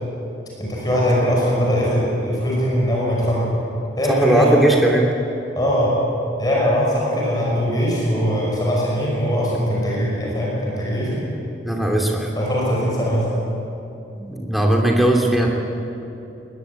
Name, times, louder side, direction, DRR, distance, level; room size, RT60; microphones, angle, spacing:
voice 1, 0.6-3.5 4.0-4.6 5.6-6.0 6.4-11.3 12.4-13.3, equal, 20° left, -4 dB, 5.6 m, -21 dB
voice 2, 4.1-5.1 11.6-12.3 14.1-15.5, right 1 dB, ahead, -1 dB, 2.9 m, -18 dB
20.5 x 20.5 x 8.6 m, 3.0 s
head